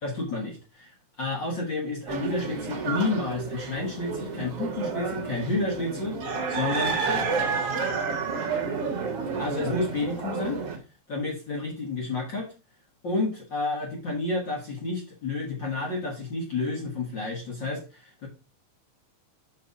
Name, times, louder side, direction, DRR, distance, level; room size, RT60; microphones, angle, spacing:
voice 1, 0.0-7.7 9.4-10.6 11.1-12.5 13.0-18.3, left 3 dB, 60° left, -1 dB, 1.2 m, -30 dB
sound 1, 2.1-10.8, right 5 dB, 55° right, 1.9 m, -30 dB
5.6 x 5.3 x 5.0 m, 0.32 s
omnidirectional pair, 4.4 m